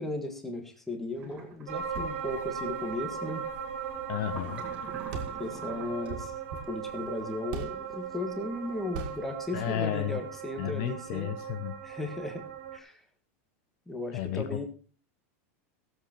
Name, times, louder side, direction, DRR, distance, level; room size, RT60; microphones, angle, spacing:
voice 1, 0.0-3.4 5.4-6.3 6.7-11.3 11.8-12.4 12.7-13.0 13.9-14.7, left 2 dB, 5° left, 4 dB, 1.5 m, -36 dB
sound 1, 1.2-1.7 4.3-6.1, right 5 dB, 15° right, 2.3 m, -45 dB
sound 2, 1.7-12.8, right 7 dB, 65° right, 2.2 m, -38 dB
sound 3, 1.8-4.4 4.7-4.8 5.1-8.0 8.9-9.4, right 4 dB, 40° right, 2.3 m, -42 dB
voice 2, 4.1-4.6 9.5-10.2 10.6-11.7 14.1-14.7, left 11 dB, 40° left, 10 dB, 0.7 m, -32 dB
16.5 x 7.6 x 4.4 m, 0.37 s
supercardioid pair, 175°, 7 cm